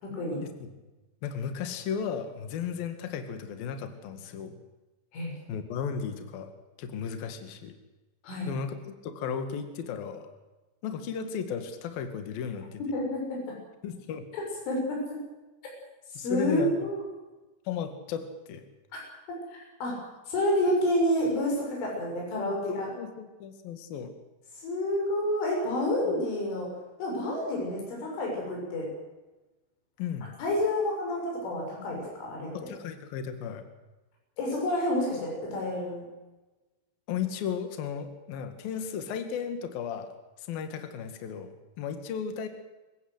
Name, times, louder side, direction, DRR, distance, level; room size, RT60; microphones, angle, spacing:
voice 1, 0.0-0.4 5.1-5.4 8.2-8.5 12.8-13.5 14.4-15.0 16.2-17.0 19.5-20.0 20.3-22.9 24.6-26.7 27.0-28.9 30.4-32.5 34.4-36.0, left 1 dB, 80° left, -1 dB, 9.0 m, -29 dB
voice 2, 1.2-4.6 5.5-6.5 6.8-7.7 8.5-10.3 10.8-12.8 13.8-14.3 16.1-16.9 17.6-18.6 22.7-24.1 26.1-26.2 30.0-30.3 32.5-33.7 37.1-40.1 40.4-42.5, left 7 dB, 55° left, 8 dB, 3.4 m, -35 dB
27.5 x 15.5 x 8.0 m, 1.1 s
omnidirectional pair, 5.5 m